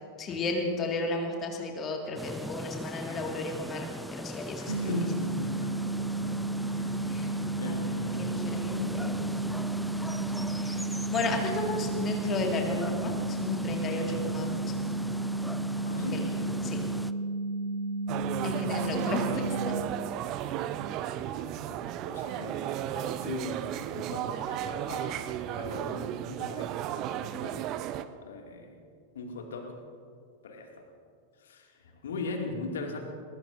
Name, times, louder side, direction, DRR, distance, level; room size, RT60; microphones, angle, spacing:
voice 1, 0.2-4.9 7.1-7.3 7.7-9.1 10.1-14.5 16.1-16.2 16.6-16.8 18.4-19.8, left 3 dB, 25° left, 2 dB, 1.9 m, -34 dB
sound 1, 2.2-17.1, equal, ahead, 0.4 m, -39 dB
voice 2, 4.6-7.2 7.5-8.5 9.0-9.6 15.8-16.4 18.8-18.9 21.7-22.6 22.9-25.2 25.5-26.7 26.9-27.7 28.2-28.8 29.1-29.7 30.4-30.8 31.4-33.0, left 3 dB, 65° left, 2 dB, 2.2 m, -39 dB
sound 2, 4.7-19.8, right 2 dB, 85° right, 0.8 m, -32 dB
sound 3, 18.1-28.0, right 11 dB, 40° right, 0.6 m, -34 dB
21.0 x 21.0 x 2.6 m, 2.2 s
figure-of-eight pair, 90°, 0 cm